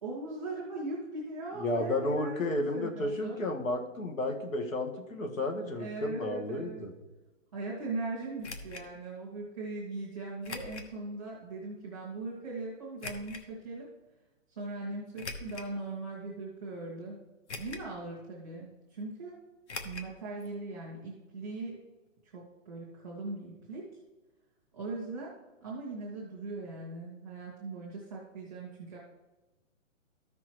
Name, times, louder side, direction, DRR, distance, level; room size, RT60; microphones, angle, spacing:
voice 1, 0.0-3.4 5.8-6.8 7.5-13.9 14.6-17.2 17.6-19.4 19.8-21.8 22.3-23.9 24.7-25.3 25.6-29.0, right 3 dB, ahead, -6 dB, 0.7 m, -39 dB
voice 2, 1.6-6.9, left 1 dB, 90° left, 4 dB, 1.8 m, -32 dB
sound 1, 8.4-8.9 10.4-10.9 11.5-11.6 13.0-13.4 15.1-15.7 16.4-16.5 17.5-18.0 18.2-18.3 19.7-20.1 20.4-20.5 20.8-20.9, left 3 dB, 55° left, 1.2 m, -42 dB
14.0 x 6.1 x 3.1 m, 1.1 s
hypercardioid pair, 180°, 39 cm